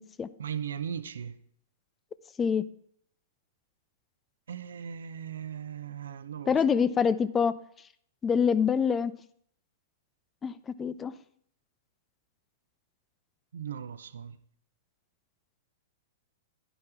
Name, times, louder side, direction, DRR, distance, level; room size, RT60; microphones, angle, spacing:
voice 1, 0.4-1.4 4.5-6.8 13.5-14.4, right 8 dB, 70° right, 0.8 m, -38 dB
voice 2, 6.5-7.6 8.2-9.1 10.4-11.1, left 6 dB, 20° left, 0.5 m, -25 dB
11.0 x 11.0 x 3.7 m
figure-of-eight pair, 105°, 0 cm